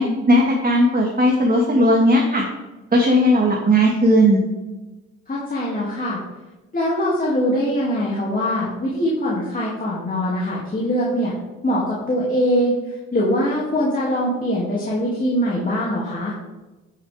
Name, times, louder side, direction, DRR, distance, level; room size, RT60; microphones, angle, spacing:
voice 1, 0.0-2.5 2.9-4.4, equal, 30° right, -1 dB, 1.8 m, -16 dB
voice 2, 5.3-6.2 6.7-11.3 11.6-12.8 13.1-16.3, equal, 30° left, -6 dB, 2.6 m, -22 dB
14.5 x 7.1 x 3.5 m, 1.1 s
cardioid pair, 90°, 30 cm